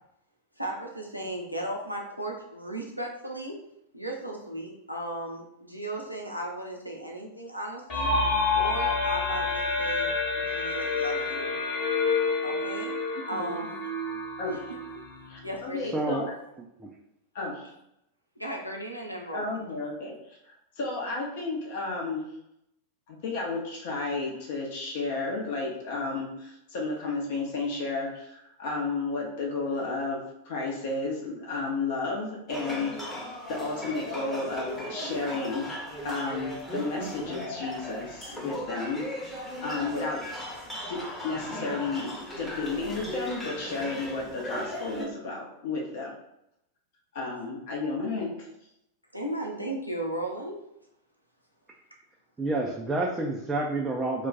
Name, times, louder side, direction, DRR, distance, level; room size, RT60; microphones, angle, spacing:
voice 1, 0.6-3.6 3.9-8.1 8.5-11.5 12.4-12.9 13.3-13.9 14.5-14.8 15.4-16.0 18.4-19.6 49.1-50.6, right 1 dB, 90° right, -1 dB, 0.5 m, -36 dB
sound 1, 7.9-15.5, left 4 dB, 35° left, 1.1 m, -28 dB
voice 2, 15.3-16.3 17.3-17.7 19.3-22.3 23.1-33.2 33.5-39.1 39.6-40.2 40.9-46.1 47.1-48.3, left 3 dB, 50° left, -2 dB, 0.7 m, -32 dB
voice 3, 15.9-16.3 16.8-16.9 52.4-54.3, right 2 dB, 15° right, -2 dB, 0.4 m, -28 dB
sound 2, 32.5-45.1, equal, 5° left, 0.8 m, -37 dB
2.3 x 2.2 x 3.8 m, 0.81 s
figure-of-eight pair, 90°, 0 cm